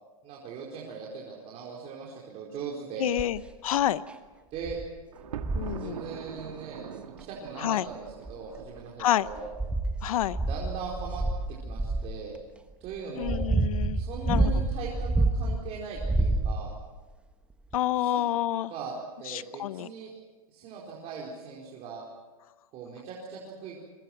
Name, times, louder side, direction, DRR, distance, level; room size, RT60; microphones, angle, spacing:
voice 1, 0.2-3.1 4.5-4.8 5.8-6.9 7.2-9.5 10.4-11.2 11.6-12.4 12.8-13.4 13.9-16.7 18.0-18.2 18.7-18.9 19.2-20.1 20.5-22.1 22.7-23.8, right 5 dB, 35° right, -3 dB, 4.6 m, -40 dB
voice 2, 3.0-4.0 5.5-6.0 7.6-7.9 9.0-9.3 10.0-10.4 13.2-14.5 17.7-18.7 19.3-19.9, left 12 dB, 70° left, 15 dB, 1.0 m, -28 dB
sound 1, 3.2-3.5 4.1-4.2 4.6-4.9 5.3-5.8 7.2-7.3 8.1-8.8 9.3-12.1 12.9-15.6 16.0-16.9 17.7-17.8, right 2 dB, 5° right, 1.2 m, -28 dB
Thunder, 5.1-9.2, right 9 dB, 75° right, 1.8 m, -43 dB
29.0 x 23.0 x 6.1 m, 1.3 s
hypercardioid pair, 140°, 19 cm